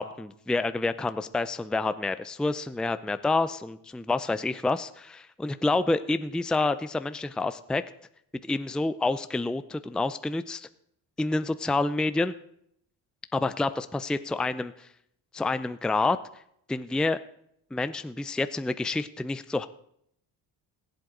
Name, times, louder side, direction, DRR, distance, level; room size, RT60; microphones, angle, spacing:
voice 1, 0.0-7.8 8.4-10.7 11.2-12.3 13.3-14.9 15.3-16.2 16.7-17.2 17.7-19.7, left 3 dB, ahead, 12 dB, 0.5 m, -28 dB
21.0 x 7.9 x 3.9 m, 0.71 s
supercardioid pair, 65°, 42 cm